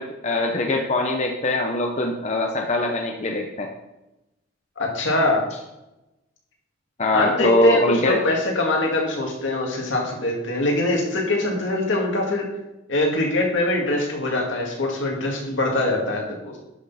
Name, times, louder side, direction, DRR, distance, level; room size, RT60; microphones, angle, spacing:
voice 1, 0.0-3.7 7.0-8.2, left 2 dB, 35° left, 2 dB, 0.7 m, -22 dB
voice 2, 4.8-5.4 7.1-12.5 12.9-16.5, left 2 dB, 75° left, -1 dB, 2.2 m, -23 dB
10.5 x 6.1 x 4.2 m, 0.95 s
head